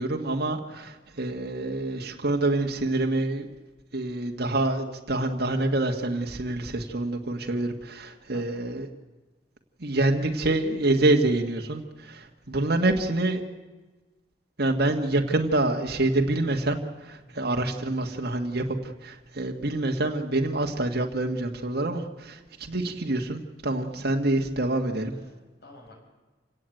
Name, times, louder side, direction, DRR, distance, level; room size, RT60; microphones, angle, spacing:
voice 1, 0.0-3.5 3.9-8.9 9.8-13.4 14.6-16.8 17.0-25.1, right 2 dB, 60° right, 2 dB, 1.7 m, -26 dB
voice 2, 25.1-26.0, left 1 dB, 60° left, 1 dB, 6.6 m, -52 dB
28.0 x 17.0 x 9.2 m, 1.2 s
head